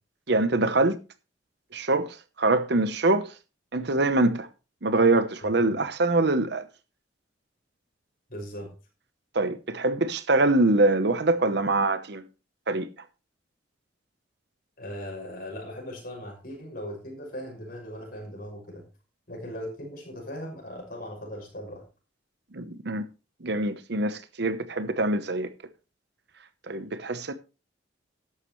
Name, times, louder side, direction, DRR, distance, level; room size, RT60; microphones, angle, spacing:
voice 1, 0.3-1.0 1.7-3.3 3.7-4.5 4.8-6.6 9.3-12.2 12.7-12.9 22.5-23.0 23.4-25.5 26.7-27.3, right 2 dB, 60° right, 0.9 m, -24 dB
voice 2, 8.3-8.7 14.8-18.8 19.3-21.8, equal, 50° left, 6.1 m, -38 dB
13.5 x 10.5 x 3.2 m
head